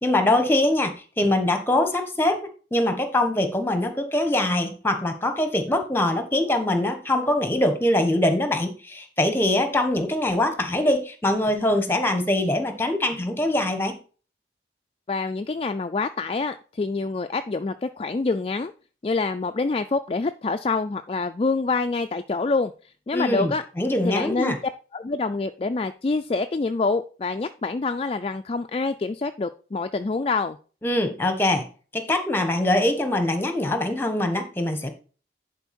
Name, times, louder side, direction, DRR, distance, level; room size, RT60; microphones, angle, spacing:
voice 1, 0.0-2.4 2.7-14.0 23.1-24.6 30.8-31.6 31.9-34.9, left 1 dB, 15° left, 7 dB, 1.2 m, -23 dB
voice 2, 15.1-18.7 19.0-22.7 23.1-23.6 24.0-24.6 24.9-30.6, left 3 dB, 30° left, 9 dB, 0.3 m, -26 dB
10.5 x 4.5 x 4.3 m, 0.37 s
head